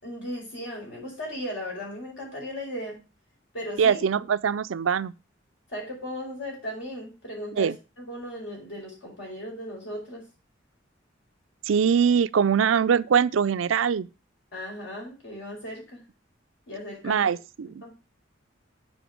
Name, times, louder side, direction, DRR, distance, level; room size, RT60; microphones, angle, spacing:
voice 1, 0.0-3.0 3.5-4.0 5.7-10.2 14.5-16.0 16.7-17.3 17.8-17.9, equal, 70° left, 4.9 m, -36 dB
voice 2, 3.8-5.1 7.6-7.7 11.7-14.1 17.0-17.8, right 7 dB, 85° right, 0.4 m, -22 dB
7.1 x 5.3 x 6.1 m
head